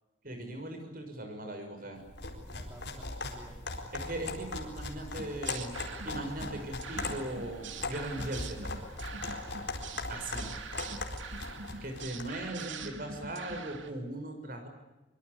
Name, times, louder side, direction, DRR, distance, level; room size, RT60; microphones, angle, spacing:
voice 1, 0.2-2.0 3.9-5.7 6.0-8.7 10.1-10.5 11.8-14.7, right 1 dB, 45° right, 5 dB, 6.4 m, -39 dB
sound 1, 2.1-12.4, left 3 dB, 60° left, 4.4 m, -39 dB
voice 2, 2.3-3.8 10.4-11.0, right 1 dB, 15° right, 0 dB, 3.9 m, -55 dB
sound 2, 5.2-13.9, right 4 dB, 80° right, 2.5 m, -44 dB
24.5 x 23.5 x 8.4 m, 1.0 s
head